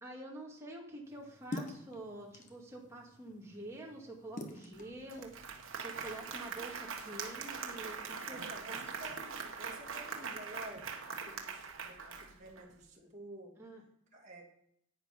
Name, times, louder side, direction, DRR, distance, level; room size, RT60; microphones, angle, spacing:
voice 1, 0.0-8.8 13.0-13.1 13.6-13.8, right 1 dB, 15° right, -2 dB, 2.3 m, -48 dB
sound 1, 1.0-6.2, left 2 dB, 35° left, 1.3 m, -48 dB
Applause, 4.7-4.8 5.1-12.6, right 5 dB, 70° right, 1.3 m, -42 dB
voice 2, 8.3-13.5 14.1-14.4, right 1 dB, 35° right, -1 dB, 2.6 m, -51 dB
10.5 x 9.0 x 5.3 m, 0.72 s
head